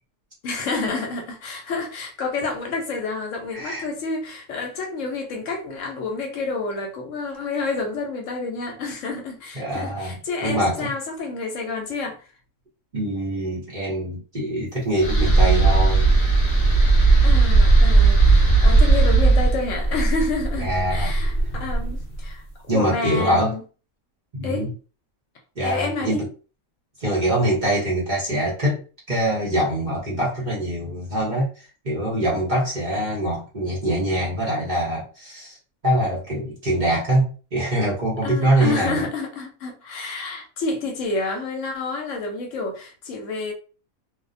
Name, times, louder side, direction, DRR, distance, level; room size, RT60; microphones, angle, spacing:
voice 1, 0.4-12.3 17.2-23.6 24.4-24.7 25.6-26.3 38.2-43.5, left 3 dB, 70° left, 0.9 m, -29 dB
voice 2, 3.5-3.8 9.5-10.9 12.9-16.2 20.6-21.1 22.7-23.5 24.3-24.7 25.6-26.3 27.0-28.8 29.1-35.6 35.8-39.1, right 1 dB, 40° right, 0.8 m, -24 dB
sound 1, 15.0-22.2, right 3 dB, 35° left, 1.0 m, -17 dB
2.5 x 2.0 x 2.5 m
omnidirectional pair, 1.5 m